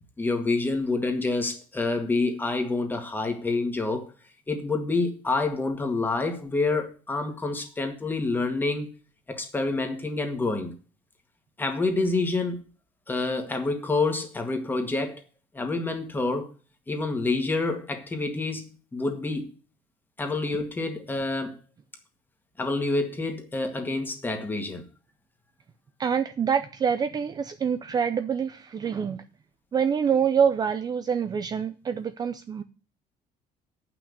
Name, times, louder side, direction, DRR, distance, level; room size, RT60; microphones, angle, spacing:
voice 1, 0.2-4.1 4.5-8.9 9.3-10.7 11.6-12.6 13.1-15.2 15.5-16.5 16.9-19.5 20.2-21.6 22.6-24.8, left 3 dB, 15° left, 1.8 m, -27 dB
voice 2, 26.0-29.2 29.7-32.6, right 7 dB, 30° right, 0.6 m, -26 dB
8.5 x 6.1 x 8.1 m
cardioid pair, 155°, 15 cm